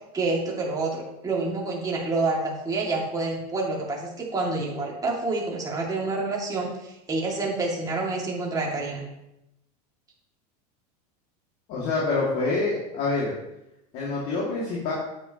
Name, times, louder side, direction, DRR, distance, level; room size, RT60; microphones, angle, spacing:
voice 1, 0.1-9.0, right 3 dB, 20° right, -2 dB, 2.3 m, -28 dB
voice 2, 11.7-13.3 13.9-14.9, left 3 dB, 50° left, -5 dB, 2.3 m, -26 dB
9.4 x 7.9 x 3.0 m, 0.88 s
supercardioid pair, 125°, 20 cm